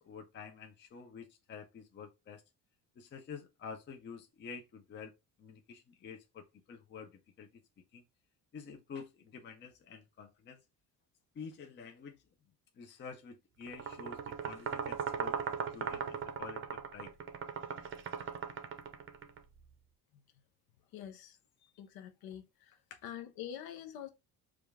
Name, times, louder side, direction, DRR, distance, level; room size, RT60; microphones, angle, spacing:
voice 1, 0.0-2.4 3.0-5.1 5.4-7.1 7.4-7.5 7.9-8.0 8.5-10.6 11.4-12.2 12.8-17.1, left 5 dB, 30° left, 0.5 m, -49 dB
sound 1, 13.7-19.4, right 7 dB, 35° right, 0.6 m, -39 dB
voice 2, 20.9-21.4 21.8-22.8 23.0-24.1, left 10 dB, 80° left, 0.7 m, -45 dB
4.9 x 2.4 x 3.4 m
cardioid pair, 155°, 37 cm